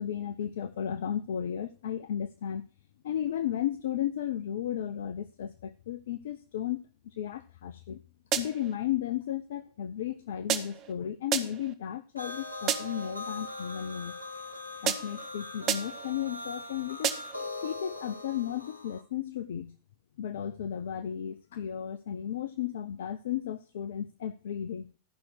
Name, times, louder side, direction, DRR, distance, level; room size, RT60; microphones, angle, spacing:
voice 1, 0.0-2.7 3.0-8.0 8.3-14.1 14.8-17.2 17.6-19.7 20.2-24.9, left 10 dB, 60° left, 0.6 m, -34 dB
sound 1, 8.3-8.7 10.5-10.9 11.3-11.7 12.7-13.1 14.9-15.3 15.7-16.1 17.0-17.5, right 9 dB, 35° right, 1.1 m, -31 dB
sound 2, 12.2-19.0, left 2 dB, 85° left, 1.2 m, -41 dB
13.5 x 5.9 x 6.4 m
figure-of-eight pair, 90°, 0 cm